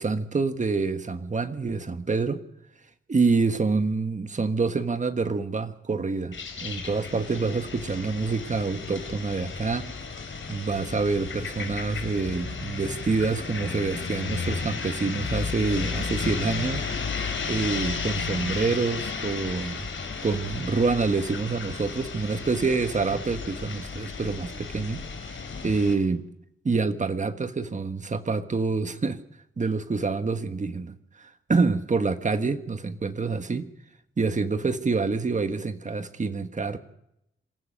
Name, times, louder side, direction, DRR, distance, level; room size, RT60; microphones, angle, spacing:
voice 1, 0.0-2.4 3.1-9.9 10.5-16.8 17.5-19.9 20.2-26.3 26.6-29.2 29.6-33.7 34.2-36.8, right 4 dB, 35° right, 8 dB, 1.5 m, -27 dB
sound 1, 6.3-25.9, left 5 dB, 70° left, 4.1 m, -33 dB
27.0 x 15.0 x 6.6 m, 0.82 s
wide cardioid pair, 135°, 21 cm